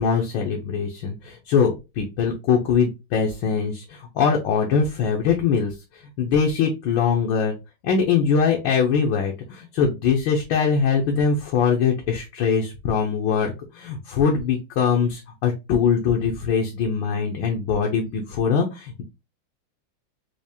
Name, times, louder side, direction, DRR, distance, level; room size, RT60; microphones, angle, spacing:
voice 1, 0.0-5.7 6.2-7.6 7.8-19.0, left 6 dB, 70° left, 1 dB, 1.4 m, -22 dB
4.8 x 2.4 x 2.7 m, 0.25 s
omnidirectional pair, 2.3 m